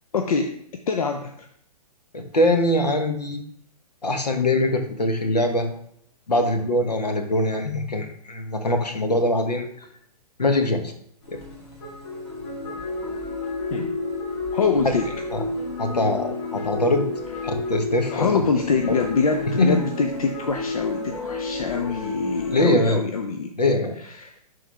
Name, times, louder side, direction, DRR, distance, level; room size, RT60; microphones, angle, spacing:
voice 1, 0.1-0.6 0.9-1.5 13.7-13.9 14.5-15.1 18.1-23.6 24.0-24.3, left 5 dB, 60° left, 5 dB, 0.6 m, -25 dB
voice 2, 2.1-3.4 4.0-5.7 6.3-9.7 10.4-10.9 11.3-11.4 15.3-15.4 15.8-17.0 17.4-18.3 18.9-19.0 19.6-19.8 22.5-23.0 23.6-24.0, left 1 dB, 75° left, 6 dB, 1.2 m, -22 dB
sound 1, 11.2-22.6, left 2 dB, 45° left, 2.2 m, -31 dB
11.0 x 3.9 x 3.3 m, 0.68 s
figure-of-eight pair, 120°, 21 cm